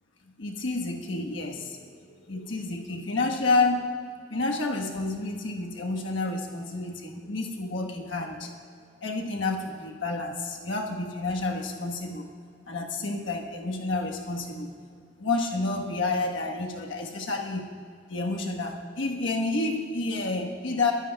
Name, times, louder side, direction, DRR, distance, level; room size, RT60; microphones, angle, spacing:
voice 1, 0.4-3.9 4.3-8.5 9.0-12.3 12.7-14.7 15.2-17.7 18.1-20.9, left 3 dB, 85° left, 1 dB, 1.3 m, -29 dB
22.0 x 9.9 x 2.3 m, 2.2 s
head